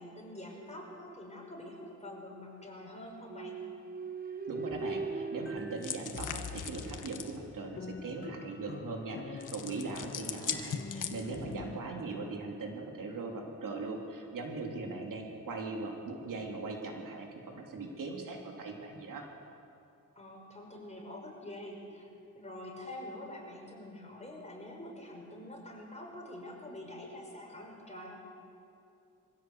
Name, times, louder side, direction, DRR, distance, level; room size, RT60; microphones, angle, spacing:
voice 1, 0.0-3.6 20.2-28.1, left 1 dB, 20° left, -1 dB, 5.8 m, -46 dB
sound 1, 3.2-7.0, right 4 dB, 30° right, 1.0 m, -40 dB
voice 2, 4.5-19.3, right 3 dB, 75° right, 1 dB, 3.1 m, -40 dB
sound 2, 4.7-11.8, left 5 dB, 40° left, 1.3 m, -46 dB
sound 3, 5.8-7.4 9.4-11.5, left 7 dB, 70° left, 1.5 m, -39 dB
23.0 x 16.0 x 8.1 m, 2.7 s
cardioid pair, 85°, 32 cm